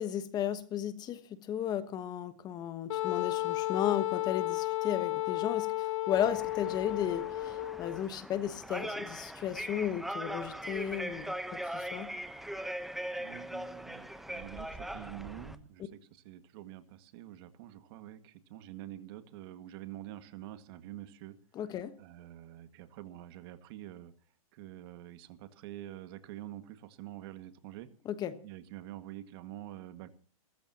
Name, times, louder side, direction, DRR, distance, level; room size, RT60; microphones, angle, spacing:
voice 1, 0.0-11.3 11.7-12.1 21.5-22.0 28.0-28.4, left 10 dB, 20° left, 12 dB, 1.2 m, -34 dB
Wind instrument woodwind instrument, 2.9-8.0, left 16 dB, 55° left, 0.8 m, -33 dB
sound 1, 6.1-15.6, right 1 dB, ahead, 0.9 m, -40 dB
voice 2, 13.2-21.4 22.0-24.1 24.5-27.9 28.4-30.1, right 13 dB, 45° right, 10 dB, 1.9 m, -47 dB
29.5 x 14.0 x 2.9 m, 0.38 s
hypercardioid pair, 145°, 19 cm